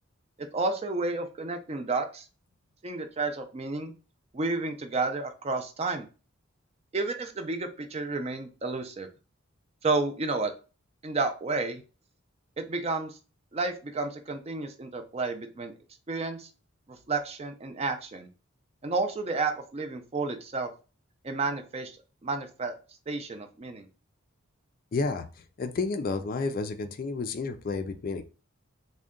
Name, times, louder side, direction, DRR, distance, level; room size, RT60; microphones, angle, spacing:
voice 1, 0.4-2.3 2.8-3.9 4.3-6.1 6.9-9.1 9.8-10.5 11.0-11.8 12.6-13.2 13.5-15.7 16.1-16.5 16.9-18.3 18.8-20.7 21.2-22.0 22.2-22.7 23.1-23.9, right 3 dB, 30° right, 6 dB, 0.4 m, -31 dB
voice 2, 24.9-28.2, left 3 dB, 40° left, 9 dB, 0.3 m, -31 dB
3.6 x 2.2 x 3.6 m, 0.34 s
head